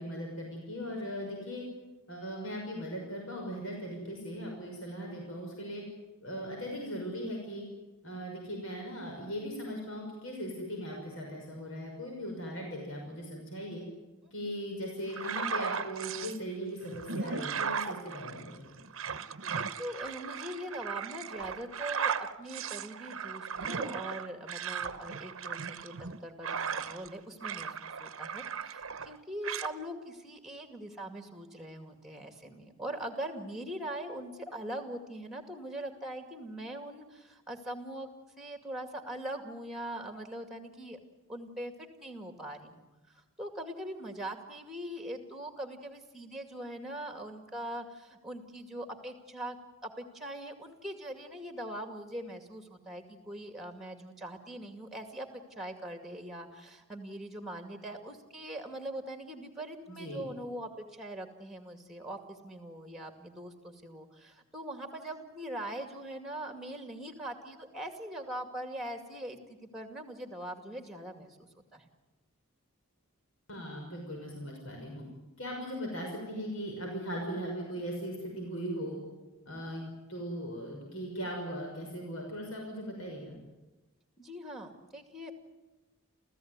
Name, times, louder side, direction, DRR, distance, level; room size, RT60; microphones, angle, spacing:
voice 1, 0.0-1.6 2.1-5.8 6.2-7.6 8.0-13.8 14.3-18.7 59.9-60.3 73.5-75.0 75.4-79.0 79.4-83.4, equal, 65° left, 1 dB, 6.0 m, -39 dB
voice 2, 14.2-14.6 19.5-38.1 38.4-41.0 41.3-49.6 49.8-55.3 55.6-71.4 71.7-71.9 84.2-85.3, right 1 dB, ahead, 6 dB, 2.3 m, -42 dB
sound 1, 15.1-16.4 16.9-27.1 27.4-29.2 29.4-29.7, right 6 dB, 65° right, 1.0 m, -37 dB
30.0 x 15.0 x 9.6 m, 1.1 s
head